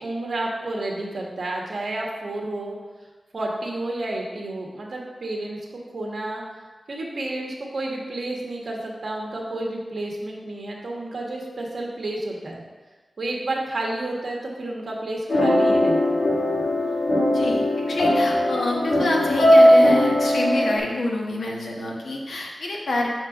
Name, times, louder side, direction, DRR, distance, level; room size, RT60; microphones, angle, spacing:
voice 1, 0.0-2.8 3.3-5.6 5.9-6.4 6.9-12.6 13.2-16.2, right 2 dB, 60° right, -1 dB, 1.3 m, -30 dB
sound 1, 15.3-20.8, left 1 dB, 65° left, 1.2 m, -19 dB
voice 2, 17.3-23.1, left 1 dB, 85° left, -2 dB, 1.2 m, -27 dB
6.1 x 4.4 x 5.0 m, 1.3 s
wide cardioid pair, 130°, 0 cm